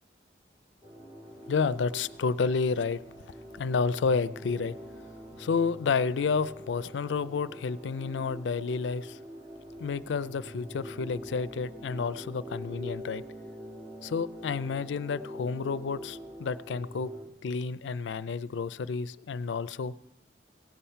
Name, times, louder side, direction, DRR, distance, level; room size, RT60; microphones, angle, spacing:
sound 1, 0.8-17.3, equal, 35° right, 2.1 m, -44 dB
voice 1, 1.5-4.7 5.4-9.2 9.8-13.2 14.0-17.1 17.4-19.9, left 5 dB, 90° left, 16 dB, 0.4 m, -30 dB
17.0 x 7.2 x 5.6 m, 0.84 s
head